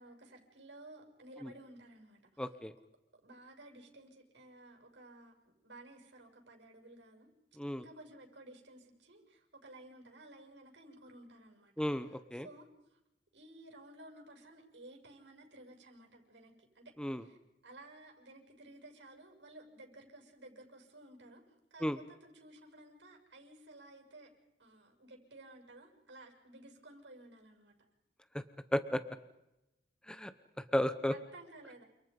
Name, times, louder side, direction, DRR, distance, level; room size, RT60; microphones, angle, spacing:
voice 1, 0.0-2.4 3.2-7.3 7.8-11.7 12.4-13.0 13.3-21.4 21.7-24.3 24.6-27.7 31.1-31.8, right 2 dB, 75° right, 2 dB, 7.0 m, -55 dB
voice 2, 2.4-2.7 7.6-7.8 11.8-12.5 17.0-17.2 21.8-22.0 28.3-28.4 28.7-29.0 30.1-30.3 30.6-31.1, equal, 5° left, 11 dB, 1.1 m, -34 dB
29.5 x 27.5 x 5.4 m, 0.91 s
head